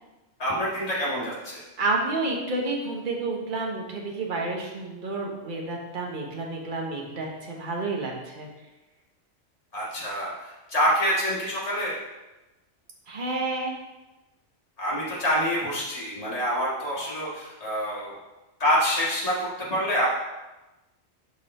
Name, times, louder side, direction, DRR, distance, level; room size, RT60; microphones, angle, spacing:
voice 1, 0.4-1.6 9.7-11.9 14.8-18.2 18.6-20.1, equal, 30° left, -6 dB, 1.9 m, -26 dB
voice 2, 1.8-8.5 13.1-13.7, right 3 dB, 40° right, 0 dB, 1.2 m, -30 dB
6.6 x 5.5 x 4.1 m, 1.1 s
omnidirectional pair, 1.3 m